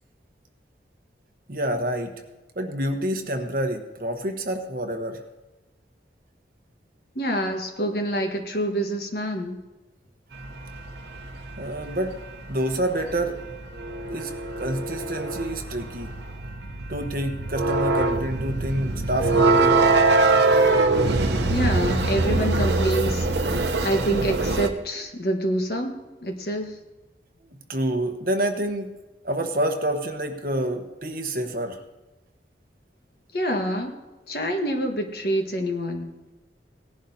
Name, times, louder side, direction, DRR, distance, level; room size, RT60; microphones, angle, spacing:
voice 1, 1.5-2.1 2.5-5.2 11.6-12.2 12.5-13.4 14.1-14.3 14.6-16.1 16.9-19.8 27.7-31.8, right 1 dB, 50° right, 5 dB, 1.1 m, -28 dB
voice 2, 7.1-9.6 21.5-26.8 33.3-34.0 34.3-36.1, right 1 dB, 55° left, 3 dB, 1.5 m, -27 dB
sound 1, 10.4-24.7, right 3 dB, 75° right, 0.9 m, -23 dB
18.0 x 11.0 x 2.8 m, 1.1 s
head